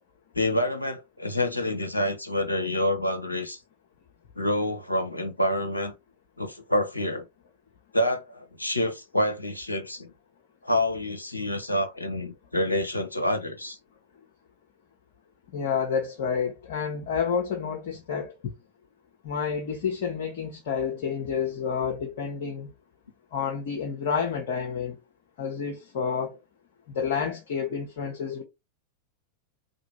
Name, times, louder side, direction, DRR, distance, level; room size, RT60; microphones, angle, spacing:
voice 1, 0.3-3.6 4.4-5.9 6.4-7.3 7.9-10.1 10.6-13.8, left 1 dB, 85° left, 0.7 m, -27 dB
voice 2, 15.5-18.5 19.2-22.7 23.3-25.0 25.4-26.4 26.9-28.4, left 6 dB, 55° left, 0.8 m, -29 dB
3.4 x 2.8 x 4.1 m
figure-of-eight pair, 90°, 0 cm